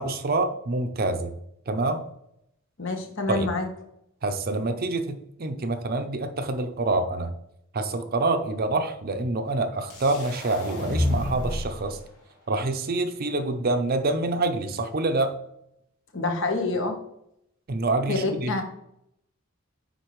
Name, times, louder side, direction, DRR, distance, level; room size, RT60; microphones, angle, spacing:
voice 1, 0.0-1.3 1.7-2.0 3.3-3.5 4.2-7.3 7.7-12.0 12.5-15.3 17.7-18.6, right 2 dB, 45° right, 8 dB, 0.6 m, -26 dB
voice 2, 2.8-3.7 16.1-17.0 18.1-18.6, left 3 dB, 60° left, 4 dB, 1.2 m, -27 dB
sound 1, 9.9-11.9, left 1 dB, 80° left, 2.6 m, -29 dB
9.3 x 4.1 x 3.1 m, 0.76 s
head